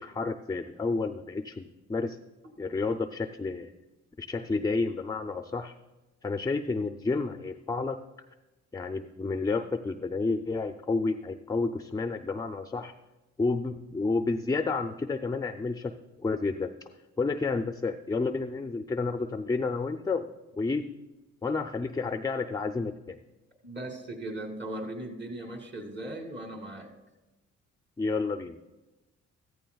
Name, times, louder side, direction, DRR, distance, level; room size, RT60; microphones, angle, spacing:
voice 1, 0.0-2.2 2.6-3.7 4.2-5.7 6.2-8.0 8.7-12.9 13.4-16.7 17.2-20.3 20.6-20.8 21.4-23.2 28.0-28.6, left 3 dB, 10° left, 7 dB, 0.4 m, -30 dB
voice 2, 23.6-26.9, right 1 dB, 40° right, 3 dB, 2.5 m, -38 dB
14.5 x 14.5 x 2.3 m, 1.1 s
cardioid pair, 90°, 30 cm